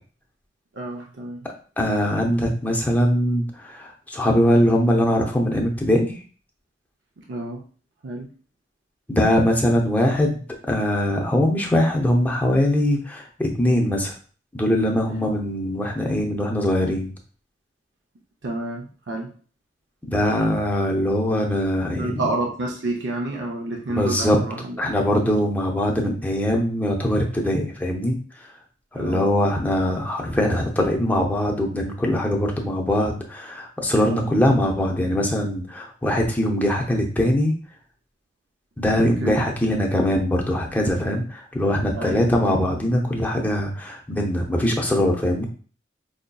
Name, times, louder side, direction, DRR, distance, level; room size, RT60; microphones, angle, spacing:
voice 1, 0.7-1.4 7.2-7.7 8.0-8.3 18.4-19.3 22.0-24.9 28.9-29.2 34.1-34.3 39.2-39.4 42.0-42.3, right 2 dB, 70° right, 0 dB, 0.5 m, -29 dB
voice 2, 1.8-6.2 9.1-14.1 14.5-17.1 20.1-22.2 23.9-24.4 24.8-28.2 28.9-37.5 38.8-45.5, left 1 dB, 10° left, 0 dB, 0.6 m, -22 dB
4.8 x 2.6 x 2.2 m, 0.40 s
head